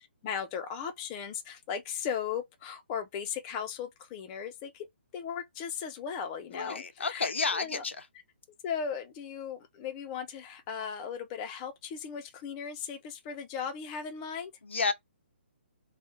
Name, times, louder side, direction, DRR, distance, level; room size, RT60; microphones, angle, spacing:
voice 1, 0.2-4.9 5.1-7.8 8.6-14.5, left 7 dB, 25° left, 0.5 m, -37 dB
voice 2, 6.5-8.0 14.6-14.9, left 4 dB, 80° left, 0.5 m, -30 dB
2.3 x 2.1 x 3.7 m
hypercardioid pair, 145°, 6 cm